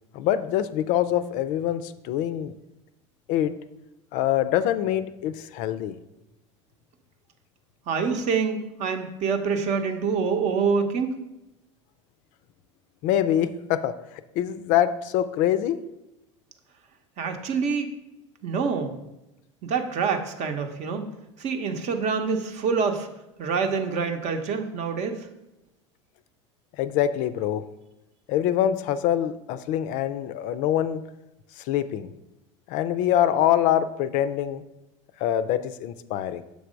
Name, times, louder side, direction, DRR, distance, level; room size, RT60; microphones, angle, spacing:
voice 1, 0.1-2.5 3.3-3.5 4.1-6.0 13.0-13.9 14.4-15.8 26.8-27.6 28.3-31.0 31.6-32.1 32.7-34.6 35.2-36.4, left 11 dB, 55° left, 12 dB, 0.4 m, -24 dB
voice 2, 7.9-11.2 17.2-18.0 18.4-18.9 19.6-21.1 21.4-23.1 23.4-25.3, right 5 dB, 50° right, 6 dB, 0.8 m, -26 dB
6.3 x 3.4 x 5.0 m, 0.93 s
hypercardioid pair, 80°, 16 cm